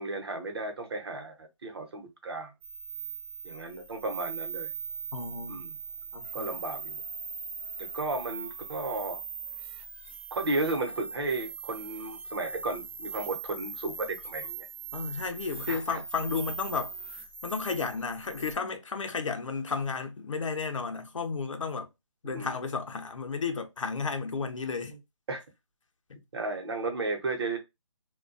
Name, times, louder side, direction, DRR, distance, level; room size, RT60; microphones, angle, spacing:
voice 1, 0.0-2.5 3.4-4.7 5.5-5.8 6.3-7.0 7.8-9.2 10.3-14.7 15.7-16.0 22.2-22.5 25.3-25.4 26.3-27.6, right 2 dB, 50° right, 0.8 m, -34 dB
sound 1, 2.6-18.5, right 5 dB, 25° right, 0.4 m, -40 dB
voice 2, 5.1-5.6 6.1-6.5 14.9-16.9 17.4-21.9 22.2-24.9 26.1-26.2, left 5 dB, 75° left, 0.6 m, -33 dB
2.3 x 2.2 x 2.5 m
figure-of-eight pair, 155°, 16 cm